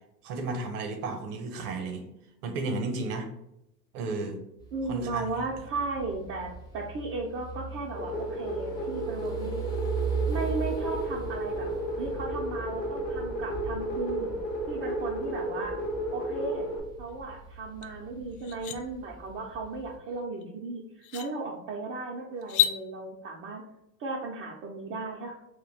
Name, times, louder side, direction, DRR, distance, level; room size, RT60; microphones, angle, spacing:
voice 1, 0.2-2.1 2.4-3.3 3.9-4.4 4.9-5.2, right 3 dB, 65° right, 5 dB, 0.8 m, -33 dB
sound 1, 4.6-20.0, right 5 dB, 10° left, 0.7 m, -39 dB
voice 2, 4.7-9.6 10.3-11.7 12.0-14.3 14.7-15.8 16.1-16.7 17.0-20.8 21.1-23.6 24.0-25.3, right 3 dB, 25° right, -1 dB, 0.4 m, -35 dB
sound 2, 7.9-16.8, right 1 dB, 90° left, 0.9 m, -33 dB
sound 3, 17.8-17.9 18.3-18.8 20.4-20.5 21.0-21.3 22.4-22.8, left 11 dB, 60° left, 0.5 m, -28 dB
2.7 x 2.1 x 3.9 m, 0.82 s
hypercardioid pair, 85°, 49 cm